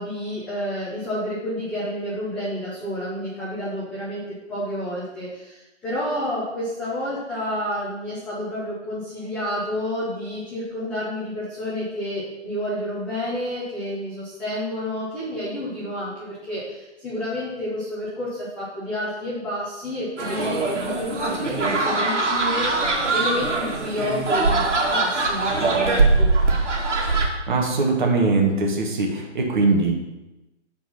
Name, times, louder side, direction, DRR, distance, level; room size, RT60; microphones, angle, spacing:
voice 1, 0.0-4.2 4.5-26.3, left 1 dB, 5° left, -12 dB, 0.7 m, -30 dB
sound 1, 20.2-27.3, right 3 dB, 70° right, 2.4 m, -22 dB
voice 2, 27.5-29.9, right 3 dB, 40° right, 0 dB, 1.9 m, -21 dB
9.5 x 4.7 x 6.0 m, 1.0 s
hypercardioid pair, 165°, 37 cm